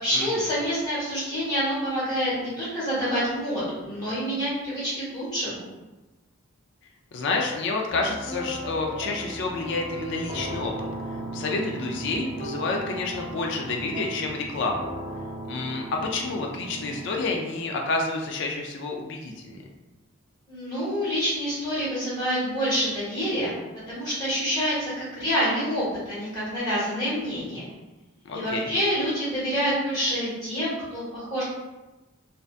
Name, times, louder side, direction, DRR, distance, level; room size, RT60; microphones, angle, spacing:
voice 1, 0.0-5.6 20.5-23.5 23.9-27.6 28.3-31.4, equal, 20° left, -12 dB, 1.2 m, -27 dB
voice 2, 7.1-10.9 11.3-14.9 15.5-19.6 28.2-28.7, left 3 dB, 55° left, 1 dB, 0.3 m, -29 dB
sound 1, 7.9-17.4, right 1 dB, 30° right, 0.5 m, -36 dB
2.6 x 2.2 x 2.4 m, 1.1 s
head